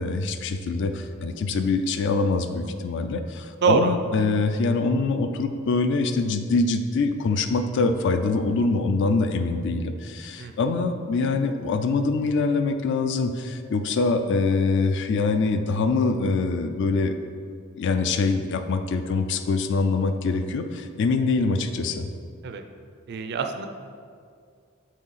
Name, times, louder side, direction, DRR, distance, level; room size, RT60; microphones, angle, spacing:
voice 1, 0.0-17.3 17.8-22.1, left 3 dB, 55° left, 8 dB, 0.4 m, -24 dB
voice 2, 3.6-3.9 10.4-10.5 22.4-22.6 23.1-23.7, right 5 dB, 50° right, 6 dB, 0.4 m, -24 dB
6.3 x 3.8 x 4.1 m, 2.2 s
head